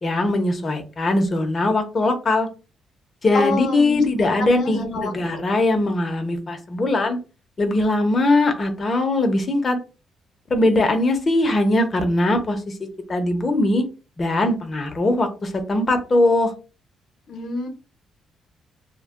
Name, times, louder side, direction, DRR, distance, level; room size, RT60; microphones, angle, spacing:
voice 1, 0.0-2.5 3.2-7.2 7.6-9.8 10.5-12.7 13.1-13.8 14.2-16.5, left 2 dB, 35° left, 5 dB, 0.8 m, -20 dB
voice 2, 3.3-4.0 4.4-5.4 17.3-17.7, left 2 dB, 65° left, 4 dB, 0.9 m, -27 dB
2.3 x 2.2 x 3.6 m, 0.32 s
cardioid pair, 90°, 0 cm